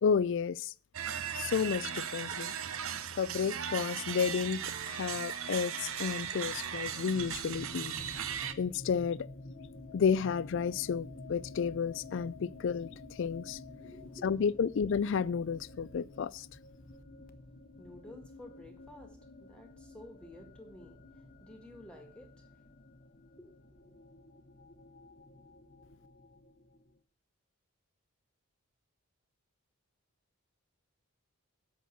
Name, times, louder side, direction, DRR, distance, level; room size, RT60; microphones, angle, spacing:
voice 1, 0.0-0.7 1.3-2.5 3.2-4.6 4.9-7.9 8.6-9.2 9.9-12.9 13.2-13.6 14.2-16.5, left 6 dB, 55° left, 0.3 m, -31 dB
sound 1, 0.9-8.5, right 8 dB, 65° right, 0.8 m, -37 dB
sound 2, 7.1-27.0, left 2 dB, 40° left, 0.8 m, -50 dB
voice 2, 13.7-14.3 17.8-21.0 21.4-22.3 23.4-23.9, left 1 dB, 5° left, 1.7 m, -52 dB
8.3 x 6.0 x 7.4 m
head